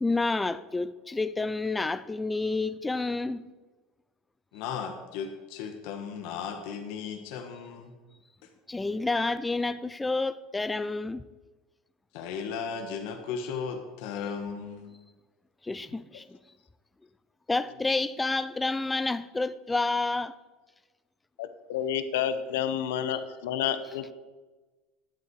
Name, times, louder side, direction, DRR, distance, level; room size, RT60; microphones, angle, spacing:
voice 1, 0.0-3.5 8.7-11.2 15.6-16.4 17.5-20.3, left 3 dB, 10° left, 0.4 m, -29 dB
voice 2, 4.5-8.0 12.1-14.9, left 6 dB, 65° left, 1.2 m, -36 dB
voice 3, 21.4-24.1, left 9 dB, 90° left, 0.8 m, -30 dB
11.0 x 8.0 x 4.8 m
supercardioid pair, 135°, 0 cm